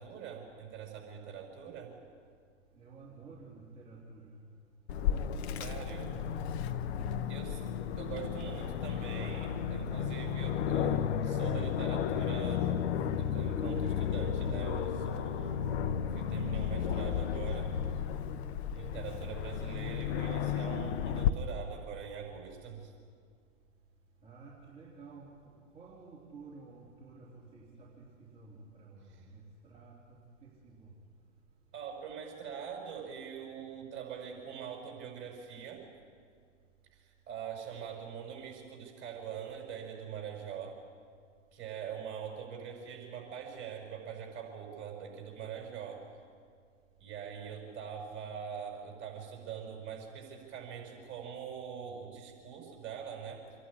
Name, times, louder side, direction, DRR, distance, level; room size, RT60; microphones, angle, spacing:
voice 1, 0.0-1.9 5.5-6.1 7.3-7.6 8.0-12.7 13.1-15.6 16.1-17.7 18.7-22.9 29.1-29.3 31.7-35.9 36.9-40.8 41.5-46.0 47.0-53.4, right 7 dB, 30° right, 1 dB, 6.1 m, -43 dB
voice 2, 2.7-4.4 5.9-6.5 24.2-30.9, right 3 dB, 15° right, -6 dB, 3.3 m, -52 dB
Aircraft, 4.9-21.3, left 8 dB, 60° left, 1.1 m, -33 dB
sound 1, 10.4-16.0, right 8 dB, 85° right, 0.9 m, -50 dB
27.0 x 11.5 x 9.9 m, 2.1 s
hypercardioid pair, 125°, 37 cm